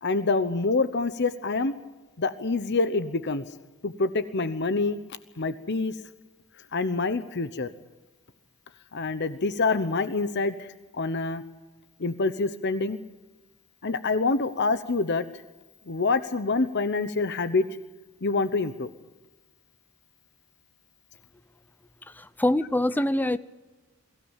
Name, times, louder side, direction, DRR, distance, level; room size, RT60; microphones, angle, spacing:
voice 1, 0.0-1.7 2.2-3.4 3.8-5.0 5.4-5.9 6.7-7.7 8.9-10.7 11.0-11.4 12.0-13.0 13.8-15.2 15.9-17.7 18.2-18.9, left 3 dB, 55° left, 0.9 m, -26 dB
voice 2, 22.1-23.4, left 1 dB, 10° left, 0.6 m, -24 dB
22.5 x 16.0 x 8.9 m
head